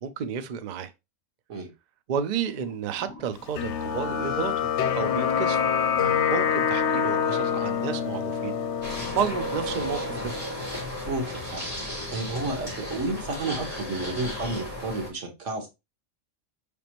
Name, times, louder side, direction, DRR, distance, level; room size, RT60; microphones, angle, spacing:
voice 1, 0.0-0.9 2.1-4.5 5.0-5.6 6.3-8.6 9.1-10.3, right 7 dB, 55° right, 0.5 m, -31 dB
sound 1, 2.4-7.8, equal, 35° left, 1.0 m, -49 dB
sound 2, 3.6-10.4, left 7 dB, 75° left, 0.9 m, -26 dB
sound 3, 8.8-15.1, equal, 30° right, 3.1 m, -34 dB
voice 2, 11.1-11.6 12.1-15.7, right 2 dB, 90° right, 1.4 m, -31 dB
5.0 x 3.4 x 2.9 m
omnidirectional pair, 1.2 m